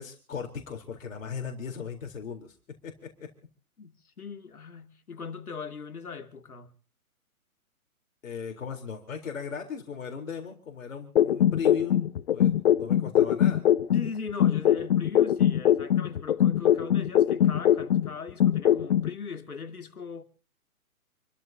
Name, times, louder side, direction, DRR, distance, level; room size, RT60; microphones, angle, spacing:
voice 1, 0.0-2.5 2.8-3.3 8.2-12.0 12.3-13.6, left 6 dB, 60° left, 4.1 m, -37 dB
voice 2, 3.8-6.7 13.9-20.2, left 5 dB, 80° left, 2.8 m, -39 dB
sound 1, 11.2-14.1 14.4-18.1 18.4-19.1, left 10 dB, 45° left, 0.9 m, -22 dB
29.0 x 14.0 x 2.9 m
figure-of-eight pair, 135°, 44 cm